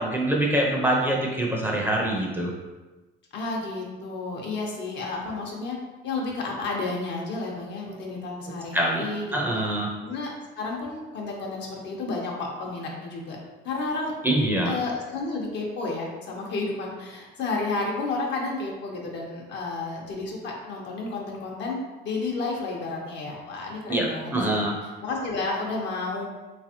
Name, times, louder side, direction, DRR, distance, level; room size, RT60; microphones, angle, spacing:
voice 1, 0.0-2.5 8.7-9.9 14.2-14.7 23.9-24.7, right 1 dB, 10° right, -2 dB, 0.6 m, -24 dB
voice 2, 3.3-5.8 6.0-9.6 10.0-13.4 13.6-14.1 14.6-21.8 22.0-24.6 25.0-26.3, left 3 dB, 60° left, -1 dB, 0.9 m, -31 dB
3.4 x 3.2 x 2.8 m, 1.2 s
cardioid pair, 100°, 21 cm